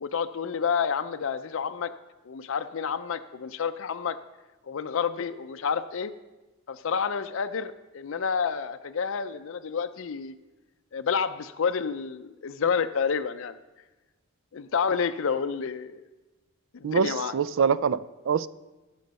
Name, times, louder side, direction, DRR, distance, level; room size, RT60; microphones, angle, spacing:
voice 1, 0.0-1.9 2.3-4.2 4.6-6.1 6.7-10.3 10.9-13.6 14.5-16.0 16.7-17.3, left 6 dB, 65° left, 10 dB, 0.5 m, -29 dB
voice 2, 16.8-18.5, right 6 dB, 65° right, 17 dB, 0.4 m, -25 dB
16.0 x 6.5 x 5.3 m, 1.1 s
head